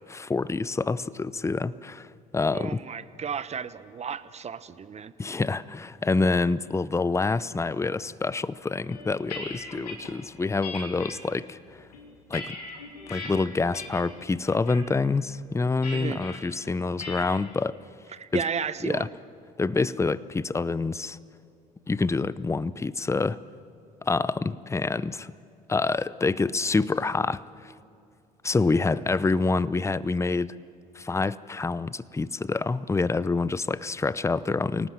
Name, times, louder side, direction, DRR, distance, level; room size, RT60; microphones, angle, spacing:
voice 1, 0.1-2.8 5.2-11.9 12.3-12.6 13.1-17.8 18.3-18.4 18.8-19.1 19.6-21.2 21.9-23.4 24.0-25.3 25.7-27.7 28.4-30.5 30.9-34.9, left 3 dB, 15° left, 18 dB, 0.7 m, -27 dB
voice 2, 2.5-5.1 15.9-16.2 18.1-19.1, right 7 dB, 35° right, 15 dB, 1.0 m, -33 dB
sound 1, 8.9-10.1 10.6-11.2 11.8-13.3 13.7-14.1 14.5-14.9 15.8-16.4 17.0-17.4, left 3 dB, 85° left, 3.2 m, -39 dB
27.5 x 18.5 x 7.6 m, 2.4 s
hypercardioid pair, 60°, 20 cm